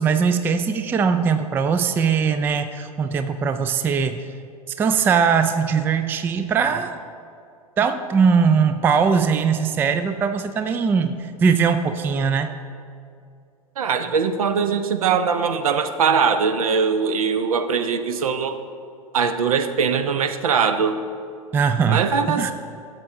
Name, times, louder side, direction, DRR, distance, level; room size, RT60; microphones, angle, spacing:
voice 1, 0.0-4.2 4.8-7.0 7.8-12.5 21.5-22.0 22.3-22.5, right 6 dB, 10° right, 9 dB, 0.3 m, -20 dB
voice 2, 13.8-18.6 19.1-21.0 21.9-22.5, right 6 dB, 65° right, 10 dB, 0.7 m, -21 dB
13.0 x 7.6 x 3.7 m, 2.3 s
figure-of-eight pair, 95°, 19 cm